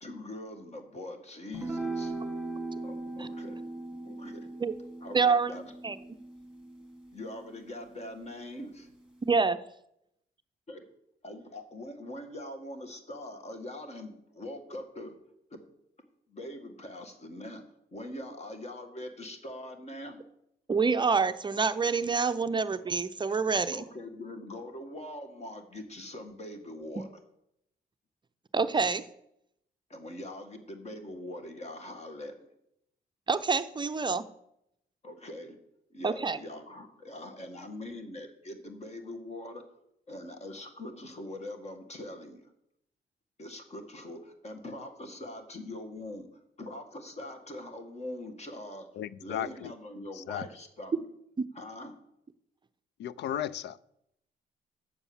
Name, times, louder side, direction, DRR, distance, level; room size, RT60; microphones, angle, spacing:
voice 1, 0.0-2.2 2.8-3.6 4.0-4.5 5.0-5.6 7.1-8.9 10.7-10.8 11.2-15.2 15.5-15.6 16.3-17.6 17.9-20.2 23.7-27.1 29.9-32.5 35.0-35.6 35.9-39.6 40.1-42.5 43.4-46.3 46.6-48.9 49.2-51.0 51.5-52.0, left 1 dB, 35° left, 5 dB, 1.8 m, -42 dB
sound 1, 1.5-8.1, right 2 dB, 5° right, 2.3 m, -39 dB
voice 2, 5.1-5.5 5.8-6.0 9.3-9.6 20.7-23.8 28.5-29.0 33.3-34.2 36.0-36.4, right 5 dB, 25° right, 9 dB, 0.5 m, -27 dB
voice 3, 49.0-49.7 50.2-50.5 53.0-53.8, left 10 dB, 70° left, 18 dB, 0.5 m, -35 dB
8.2 x 7.0 x 7.1 m, 0.80 s
cardioid pair, 100°, 18 cm